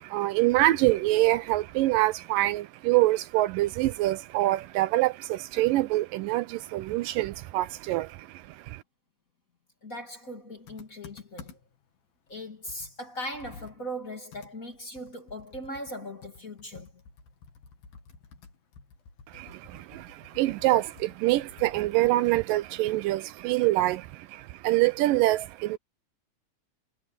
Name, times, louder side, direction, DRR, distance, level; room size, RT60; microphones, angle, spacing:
voice 1, 0.0-8.8 19.3-25.8, right 17 dB, 80° right, 2.2 m, -25 dB
voice 2, 9.8-11.6 12.3-16.9, equal, 25° left, 2.5 m, -39 dB
Computer keyboard, 10.7-11.8 12.3-12.4 12.7-16.0 16.2-22.7, left 5 dB, 85° left, 4.5 m, -51 dB
omnidirectional pair, 4.0 m